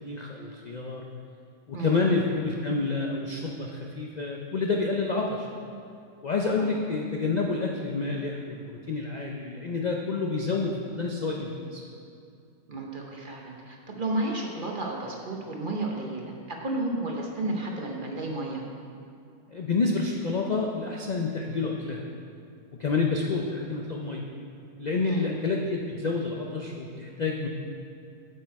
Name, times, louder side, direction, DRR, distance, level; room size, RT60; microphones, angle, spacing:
voice 1, 0.0-1.0 1.7-5.5 6.2-8.6 8.9-11.8 19.5-22.1 22.8-24.3 24.8-27.5, left 3 dB, 60° left, 0 dB, 0.4 m, -28 dB
voice 2, 12.7-18.6 25.0-25.3, right 2 dB, 40° right, 0 dB, 0.9 m, -32 dB
8.6 x 6.5 x 4.6 m, 2.5 s
omnidirectional pair, 1.5 m